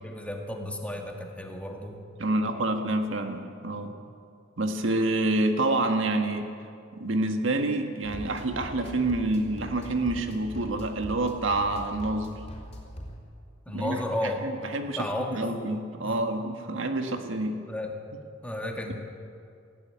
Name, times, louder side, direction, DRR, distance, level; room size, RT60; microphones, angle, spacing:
voice 1, 0.0-2.0 3.8-3.9 13.7-14.4 15.0-15.5 16.0-16.2 17.7-17.9 18.4-18.9, left 1 dB, 5° left, 2 dB, 1.8 m, -33 dB
voice 2, 2.2-3.9 4.6-6.5 7.0-12.4 13.7-14.0 14.4-17.6, right 2 dB, 70° right, 5 dB, 1.6 m, -27 dB
sound 1, 8.0-13.2, equal, 30° left, 4.1 m, -42 dB
18.5 x 15.0 x 9.5 m, 2.4 s
head